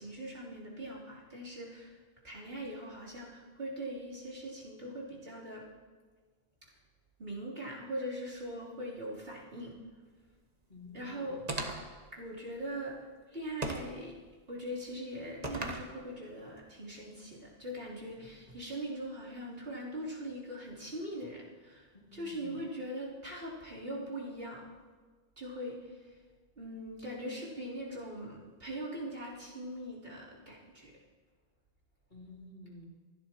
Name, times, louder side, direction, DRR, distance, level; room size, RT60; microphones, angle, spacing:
voice 1, 0.0-2.0 2.2-5.7 7.2-9.8 10.9-11.4 12.1-13.0 13.3-14.2 14.5-24.7 25.4-26.2 26.6-31.0, right 1 dB, 70° right, -7 dB, 3.8 m, -41 dB
voice 2, 10.7-11.3 21.9-22.5 32.1-32.9, left 1 dB, 50° left, -3 dB, 2.9 m, -51 dB
sound 1, 11.5-12.0 13.6-14.0 15.4-15.9, right 2 dB, 40° right, 1.3 m, -36 dB
28.0 x 11.0 x 3.0 m, 1.4 s
omnidirectional pair, 1.0 m